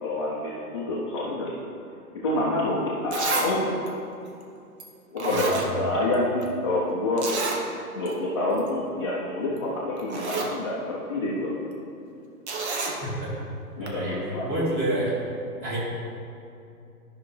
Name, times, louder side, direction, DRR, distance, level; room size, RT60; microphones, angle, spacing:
voice 1, 0.0-1.5 2.1-3.7 5.1-7.3 7.9-11.5 13.8-14.5, left 1 dB, 20° left, -8 dB, 0.6 m, -27 dB
Zipper (clothing), 2.6-2.7 3.1-3.5 3.9-4.0 4.8-4.9 5.2-6.1 6.4-6.5 7.2-7.6 8.1-8.2 8.5-8.7 9.6-9.7 10.0-10.5 12.5-13.0 13.9-14.0, right 3 dB, 45° right, 1.1 m, -29 dB
voice 2, 5.3-5.8 13.0-13.3 13.8-15.1 15.6-15.8, right 1 dB, 20° right, -6 dB, 2.1 m, -29 dB
12.5 x 5.7 x 3.3 m, 2.6 s
hypercardioid pair, 155°, 47 cm